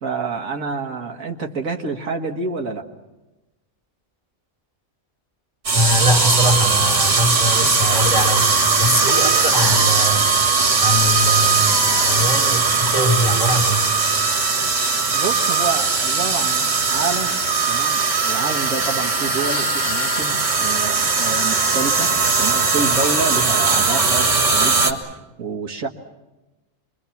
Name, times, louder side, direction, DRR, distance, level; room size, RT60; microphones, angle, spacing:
voice 1, 0.0-2.8 15.1-17.4 17.7-22.1 22.4-25.9, right 4 dB, 80° right, 3 dB, 2.0 m, -28 dB
voice 2, 5.7-8.5 8.8-10.3 10.8-13.9, equal, 25° left, 2 dB, 2.1 m, -22 dB
sound 1, 5.7-24.9, right 4 dB, 60° right, 2.1 m, -19 dB
26.0 x 22.5 x 7.1 m, 1.1 s
omnidirectional pair, 1.4 m